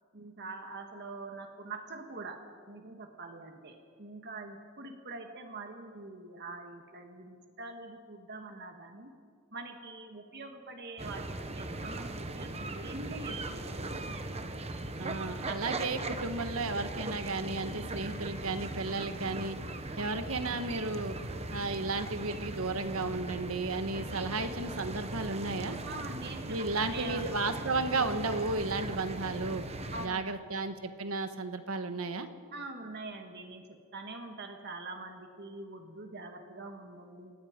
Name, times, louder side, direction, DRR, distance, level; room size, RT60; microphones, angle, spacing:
voice 1, 0.1-9.1 9.5-14.0 25.9-27.2 29.9-30.7 32.5-37.3, right 3 dB, 50° right, 4 dB, 1.9 m, -44 dB
sound 1, 11.0-30.1, right 2 dB, 30° right, 1.2 m, -39 dB
voice 2, 15.0-19.6 20.0-21.2 21.5-25.8 26.5-29.6 30.0-32.3, right 3 dB, 70° right, 9 dB, 1.5 m, -33 dB
29.5 x 17.0 x 5.3 m, 2.1 s
head